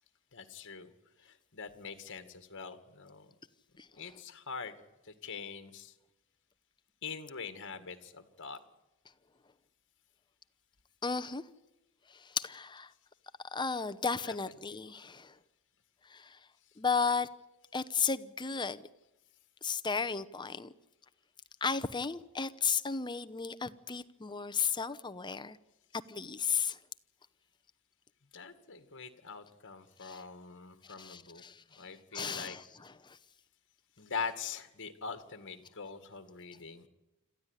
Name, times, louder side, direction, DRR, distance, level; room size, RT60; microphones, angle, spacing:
voice 1, 0.3-0.9 1.2-3.3 4.0-4.8 5.0-5.9 7.0-8.6 14.2-14.6 28.3-31.4 31.8-32.7 34.0-36.9, left 5 dB, 55° left, 2.0 m, -43 dB
voice 2, 11.0-11.4 12.1-12.9 13.5-15.3 16.1-16.4 16.8-17.3 17.7-18.9 19.6-20.7 21.6-25.6 26.1-26.8 30.0-30.2 31.0-31.8 32.1-33.2, left 5 dB, 20° left, 0.8 m, -34 dB
26.5 x 14.0 x 9.8 m
head